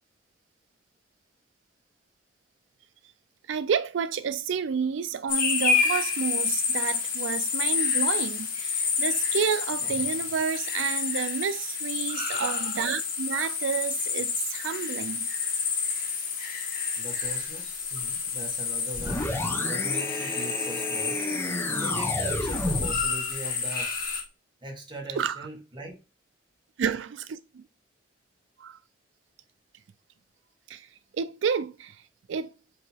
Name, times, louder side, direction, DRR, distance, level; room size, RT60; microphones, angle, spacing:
voice 1, 3.5-15.3 25.2-25.5 26.8-27.6 28.6-28.8 30.7-32.0 32.3-32.5, right 6 dB, 85° right, 0.4 m, -30 dB
sound 1, 5.3-24.2, left 5 dB, 50° left, 1.4 m, -29 dB
voice 2, 9.8-10.3 17.0-21.2 21.7-24.0 24.6-26.0, right 1 dB, 25° right, 1.7 m, -41 dB
sound 2, 18.9-23.1, left 1 dB, 15° left, 0.7 m, -31 dB
7.6 x 2.8 x 4.5 m
head